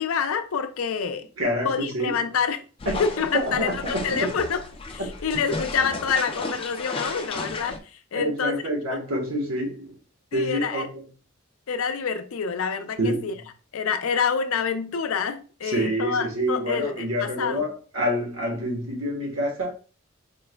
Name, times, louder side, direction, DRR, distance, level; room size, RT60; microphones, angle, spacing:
voice 1, 0.0-1.3 1.6-2.6 3.0-4.6 4.9-7.8 8.1-8.6 8.9-9.0 10.3-10.9 11.7-13.3 13.7-17.7, left 6 dB, 80° left, 0.5 m, -27 dB
voice 2, 1.4-2.2 2.8-3.1 3.3-4.3 5.0-5.1 8.1-10.0 10.3-11.1 13.0-13.3 15.6-19.7, equal, 75° right, 1.2 m, -27 dB
sound 1, 2.8-7.8, left 3 dB, 25° left, 0.4 m, -34 dB
4.5 x 2.2 x 3.3 m
head